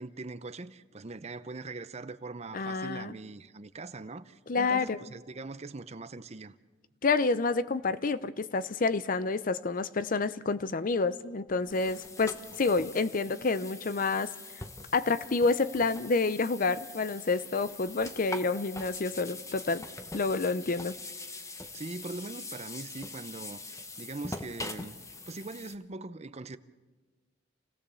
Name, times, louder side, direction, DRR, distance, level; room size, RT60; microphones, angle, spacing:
voice 1, 0.0-6.5 21.7-25.0 25.3-26.6, right 3 dB, 35° right, 0.7 m, -41 dB
voice 2, 2.5-3.2 4.5-5.0 7.0-14.3 14.9-19.8 20.1-20.9, left 3 dB, 45° left, 0.6 m, -28 dB
sound 1, 11.5-25.7, left 3 dB, 15° left, 1.0 m, -43 dB
28.5 x 16.5 x 7.0 m
head